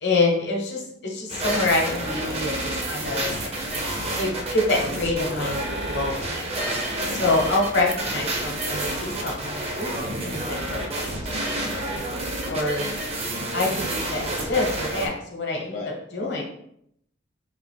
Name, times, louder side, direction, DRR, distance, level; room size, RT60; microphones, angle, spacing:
voice 1, 0.0-3.3 4.2-6.3 7.1-11.4 12.5-13.0 13.5-16.4, left 2 dB, 65° left, 0 dB, 0.9 m, -26 dB
sound 1, 1.3-15.1, right 1 dB, 35° right, 0.6 m, -29 dB
voice 2, 15.7-16.4, left 4 dB, 45° left, -1 dB, 0.3 m, -36 dB
3.4 x 2.5 x 3.4 m, 0.72 s
head